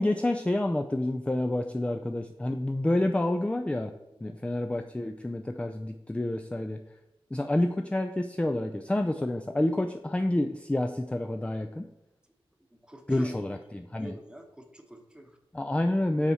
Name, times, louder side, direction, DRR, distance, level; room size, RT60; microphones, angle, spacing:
voice 1, 0.0-3.9 4.2-6.8 7.3-11.9 13.1-14.1 15.5-16.3, left 1 dB, 10° left, 5 dB, 0.4 m, -28 dB
voice 2, 12.7-13.6 14.0-15.4, right 1 dB, 10° right, 4 dB, 1.0 m, -47 dB
7.2 x 3.6 x 4.1 m, 0.91 s
cardioid pair, 55°, 10 cm